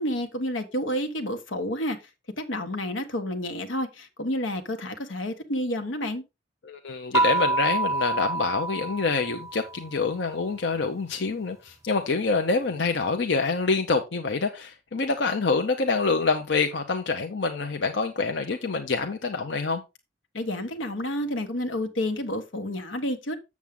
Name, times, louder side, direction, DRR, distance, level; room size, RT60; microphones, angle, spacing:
voice 1, 0.0-2.0 2.4-6.2 20.3-23.4, left 1 dB, 85° left, 1.3 m, -30 dB
voice 2, 6.6-19.8, left 4 dB, 65° left, 0.7 m, -26 dB
sound 1, 7.1-9.9, right 2 dB, 15° right, 0.4 m, -27 dB
7.3 x 7.3 x 3.6 m
head